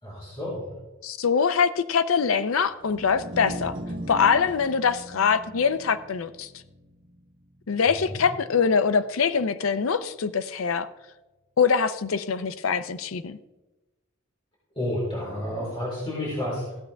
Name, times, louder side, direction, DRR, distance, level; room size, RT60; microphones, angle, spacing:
voice 1, 0.0-0.8 8.0-8.2 14.7-16.7, left 1 dB, 25° left, -7 dB, 4.3 m, -30 dB
voice 2, 1.0-3.7 4.1-6.5 7.7-10.9 11.6-13.4, left 6 dB, 75° left, 12 dB, 0.6 m, -23 dB
sound 1, 2.8-9.2, equal, 65° right, 1.8 m, -40 dB
15.5 x 8.3 x 3.4 m, 1.0 s
head